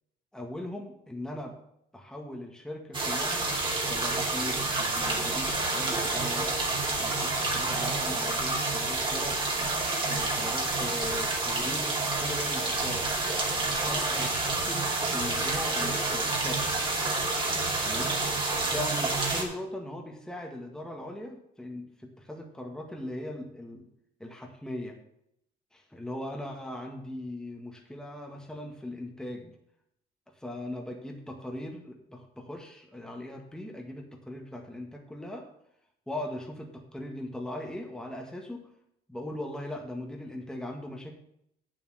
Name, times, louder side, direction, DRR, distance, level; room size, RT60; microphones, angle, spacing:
voice 1, 0.3-1.5 1.9-3.5 3.9-6.6 7.0-9.4 10.0-13.1 13.7-16.8 17.8-18.1 18.6-23.9 24.2-25.0 25.9-29.5 30.4-35.5 36.1-38.6 39.1-41.1, left 1 dB, 5° left, 1 dB, 1.8 m, -39 dB
sound 1, 2.9-19.4, right 2 dB, 30° right, 2.8 m, -29 dB
8.5 x 7.7 x 6.4 m, 0.74 s
cardioid pair, 110°, 17 cm